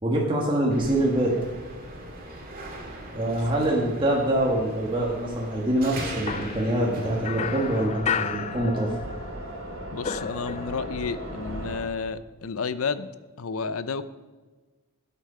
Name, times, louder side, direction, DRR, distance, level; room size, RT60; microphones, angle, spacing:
voice 1, 0.0-1.3 3.1-8.9, right 1 dB, 25° right, -3 dB, 1.5 m, -25 dB
sound 1, 0.7-7.9, right 1 dB, 40° right, 2.2 m, -39 dB
sound 2, 6.3-9.3 9.6-11.0, left 7 dB, 30° left, 0.4 m, -33 dB
sound 3, 6.7-11.8, right 1 dB, 70° right, 3.0 m, -37 dB
voice 2, 9.9-13.1 13.4-14.1, left 5 dB, 80° left, 14 dB, 0.6 m, -31 dB
12.5 x 8.2 x 5.6 m, 1.3 s
head